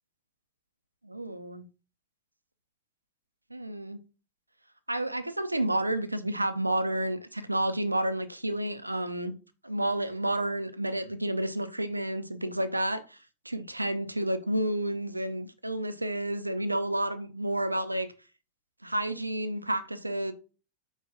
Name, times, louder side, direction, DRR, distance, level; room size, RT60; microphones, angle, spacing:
voice 1, 1.0-1.6 3.5-4.0 4.9-9.3 9.6-13.2 13.5-18.1 18.8-20.3, right 1 dB, 85° right, 0.4 m, -30 dB
4.7 x 2.2 x 4.8 m
figure-of-eight pair, 90°, 0 cm